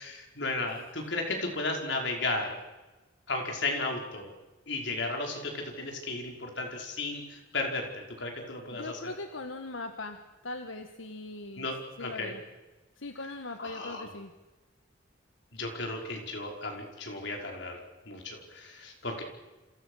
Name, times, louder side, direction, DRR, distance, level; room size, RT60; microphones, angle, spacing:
voice 1, 0.0-2.5 3.3-4.3 4.7-9.1 11.6-12.3 13.6-14.1 15.5-17.8 18.1-19.2, left 2 dB, 65° left, 2 dB, 5.4 m, -34 dB
voice 2, 8.7-11.7 12.0-12.4 13.0-14.3, left 2 dB, 85° left, 6 dB, 1.7 m, -40 dB
29.0 x 27.0 x 6.6 m, 1.2 s
head